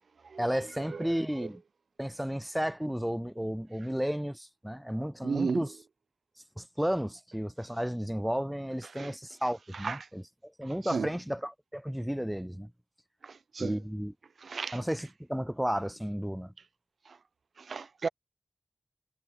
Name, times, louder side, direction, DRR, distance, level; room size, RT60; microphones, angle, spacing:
voice 1, 0.4-1.6 2.0-5.7 6.6-12.7 13.6-14.1 14.7-16.5, equal, 5° right, 0.4 m, -33 dB
voice 2, 0.9-1.5 5.2-5.6 9.0-9.1 9.7-10.0 10.6-11.1 13.2-13.8 14.4-14.8 17.1-17.2 17.6-18.1, right 5 dB, 75° right, 0.5 m, -34 dB
wide cardioid pair, 110°, 0 cm